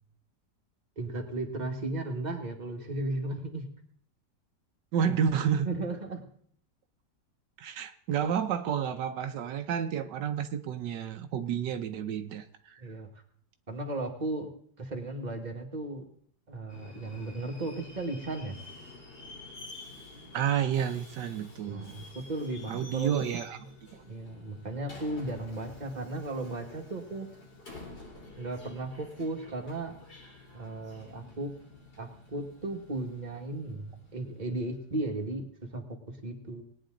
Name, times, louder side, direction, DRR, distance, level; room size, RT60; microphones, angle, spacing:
voice 1, 1.0-3.7 5.7-6.3 12.8-13.1 13.7-14.5 14.8-16.0 16.5-18.6 21.7-23.2 24.0-27.3 28.4-30.0 30.5-31.5 32.0-36.6, right 2 dB, 25° right, 1.7 m, -35 dB
voice 2, 4.9-5.7 7.6-12.8 20.3-22.0 22.7-23.6 23.9-24.0, right 8 dB, 85° right, 1.4 m, -30 dB
Subway metro underground, 16.7-35.1, left 2 dB, 75° left, 3.8 m, -50 dB
19.5 x 9.6 x 3.9 m
omnidirectional pair, 1.8 m